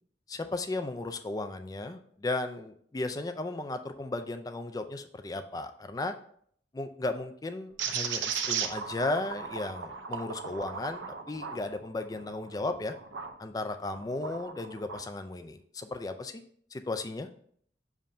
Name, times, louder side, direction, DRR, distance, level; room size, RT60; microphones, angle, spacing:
voice 1, 0.3-6.1 6.7-12.9 13.4-16.3 16.7-17.3, left 2 dB, 20° left, 7 dB, 0.3 m, -35 dB
sound 1, 7.8-13.3 13.8-15.1, right 6 dB, 90° right, 0.7 m, -36 dB
7.2 x 2.6 x 5.5 m, 0.63 s
head